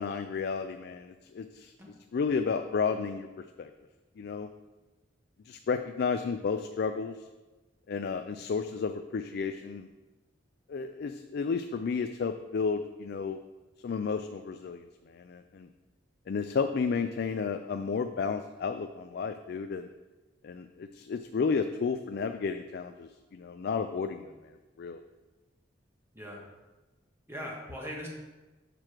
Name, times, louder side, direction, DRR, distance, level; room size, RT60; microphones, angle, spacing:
voice 1, 0.0-1.7 2.1-3.7 4.2-4.5 5.4-7.2 7.9-9.9 10.7-13.4 13.8-15.7 16.3-19.9 20.4-25.0, left 5 dB, 60° left, 7 dB, 0.4 m, -32 dB
voice 2, 27.3-28.1, equal, 15° right, -2 dB, 1.6 m, -40 dB
6.7 x 6.0 x 4.5 m, 1.2 s
head